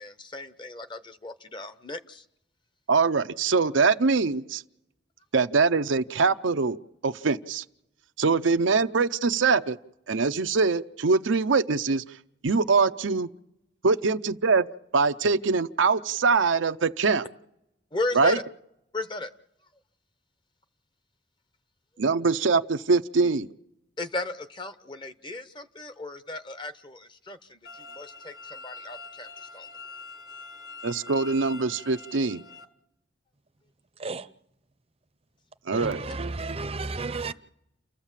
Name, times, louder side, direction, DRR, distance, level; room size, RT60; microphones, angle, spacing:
voice 1, 0.0-2.2 17.9-18.4 18.9-19.3 24.0-29.3 29.5-29.7, left 2 dB, 25° left, 0.8 m, -35 dB
voice 2, 2.9-4.6 5.3-6.8 7.0-7.6 8.2-9.8 10.1-12.0 12.4-13.3 13.8-14.7 14.9-17.3 18.1-18.4 22.0-23.5 30.8-32.4 35.7-36.0, right 4 dB, 85° right, 0.7 m, -23 dB
sound 1, 27.6-32.6, left 4 dB, 55° left, 1.6 m, -44 dB
voice 3, 35.7-37.3, right 3 dB, 30° right, 0.7 m, -32 dB
29.5 x 14.5 x 7.4 m
head